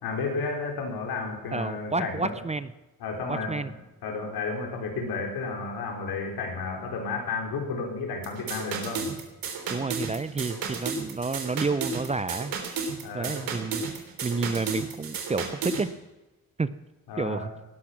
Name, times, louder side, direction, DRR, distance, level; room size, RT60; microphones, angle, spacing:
voice 1, 0.0-2.3 3.0-9.1 13.0-13.5 17.1-17.5, left 4 dB, 80° left, 2 dB, 4.6 m, -32 dB
voice 2, 1.5-2.7 3.3-3.7 9.7-13.9 14.2-15.9 16.6-16.7 17.2-17.5, right 4 dB, 20° right, 15 dB, 0.5 m, -30 dB
sound 1, 8.2-15.9, right 5 dB, 65° right, 3.4 m, -33 dB
18.5 x 12.5 x 6.0 m, 1.1 s
cardioid pair, 105°, 37 cm